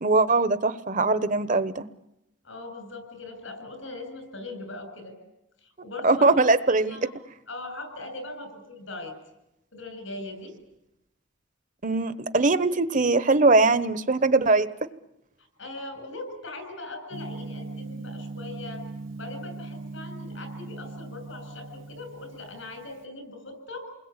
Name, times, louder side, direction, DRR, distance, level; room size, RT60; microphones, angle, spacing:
voice 1, 0.0-1.9 6.0-7.0 11.8-14.7, right 3 dB, 40° right, 13 dB, 1.1 m, -21 dB
voice 2, 2.4-5.1 5.6-6.4 6.9-7.1 7.5-9.1 9.7-10.5 15.6-18.8 19.2-23.9, left 2 dB, 85° left, 8 dB, 7.8 m, -40 dB
Gong, 17.1-23.0, right 3 dB, 85° right, 1.0 m, -39 dB
28.5 x 21.0 x 8.8 m, 0.90 s
head